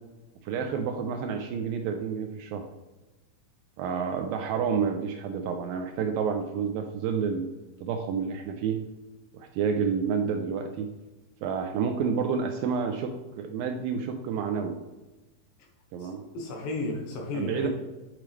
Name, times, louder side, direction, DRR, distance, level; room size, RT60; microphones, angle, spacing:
voice 1, 0.4-2.7 3.8-7.5 7.8-8.8 9.3-10.9 11.4-14.8 15.9-16.2 17.3-17.7, right 6 dB, 85° right, 5 dB, 2.1 m, -29 dB
voice 2, 16.3-17.7, left 2 dB, 70° left, 2 dB, 2.6 m, -33 dB
8.9 x 4.8 x 3.2 m, 1.1 s
omnidirectional pair, 4.5 m